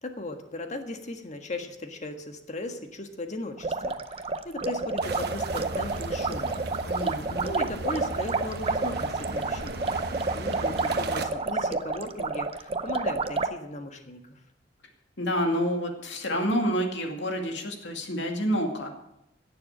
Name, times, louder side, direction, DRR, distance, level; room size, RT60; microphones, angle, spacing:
voice 1, 0.0-6.6 7.1-10.1 10.3-14.2, left 1 dB, 40° left, 6 dB, 1.5 m, -37 dB
sound 1, 3.6-13.5, right 3 dB, 30° right, 0.6 m, -29 dB
sound 2, 5.0-11.3, right 2 dB, 60° right, 1.0 m, -36 dB
voice 2, 6.9-7.5 15.2-18.9, equal, 70° left, 3 dB, 2.4 m, -28 dB
17.0 x 7.0 x 7.3 m, 0.82 s
head